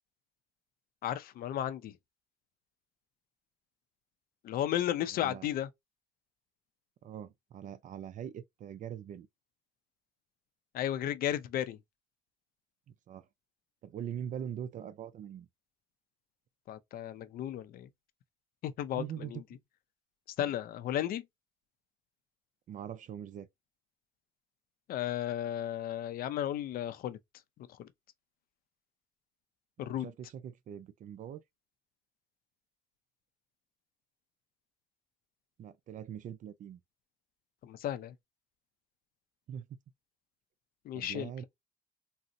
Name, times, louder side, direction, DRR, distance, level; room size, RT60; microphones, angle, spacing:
voice 1, 1.0-2.0 4.4-5.7 10.7-11.8 16.7-17.9 18.6-19.4 20.4-21.3 24.9-27.2 27.7-27.9 29.8-30.1 37.6-38.1 40.8-41.3, left 11 dB, 60° left, 0.5 m, -34 dB
voice 2, 5.1-5.5 7.0-9.3 12.9-13.3 13.8-15.5 19.0-19.3 20.4-20.5 22.7-23.5 29.8-31.4 35.6-36.8 39.5-39.8 40.9-41.4, right 9 dB, 50° right, 0.4 m, -42 dB
3.8 x 2.0 x 2.5 m
cardioid pair, 110°, 17 cm